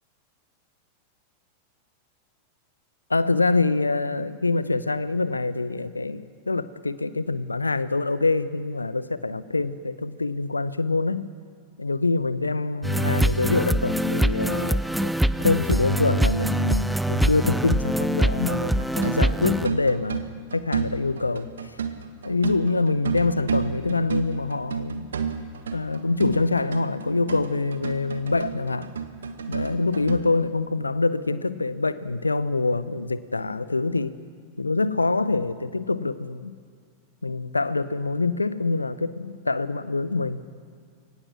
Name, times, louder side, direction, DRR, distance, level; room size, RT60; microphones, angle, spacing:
voice 1, 3.1-11.3 11.8-15.1 15.4-21.5 22.2-25.1 25.7-28.9 29.5-34.2 34.6-36.5 37.2-40.4, left 3 dB, 80° left, 16 dB, 0.7 m, -25 dB
sound 1, 12.8-19.7, right 1 dB, ahead, 0.5 m, -24 dB
sound 2, 18.8-30.2, right 6 dB, 70° right, 1.3 m, -31 dB
23.5 x 18.0 x 6.3 m, 2.1 s
figure-of-eight pair, 90°, 0 cm